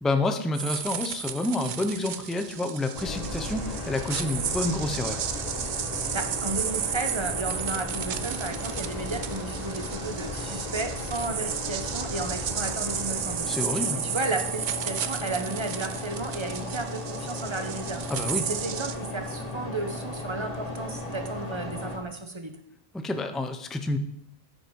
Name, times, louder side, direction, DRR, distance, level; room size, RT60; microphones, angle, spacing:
voice 1, 0.0-5.2 13.5-14.0 18.1-18.5 22.9-24.0, left 2 dB, ahead, 7 dB, 0.5 m, -28 dB
sound 1, 0.5-18.9, right 8 dB, 55° right, 0.6 m, -33 dB
sound 2, 3.0-22.0, left 2 dB, 40° left, 1.7 m, -36 dB
voice 2, 6.1-13.5 14.0-18.1 18.5-22.6, right 2 dB, 30° right, 6 dB, 0.9 m, -33 dB
13.0 x 5.4 x 4.7 m, 0.74 s
omnidirectional pair, 1.0 m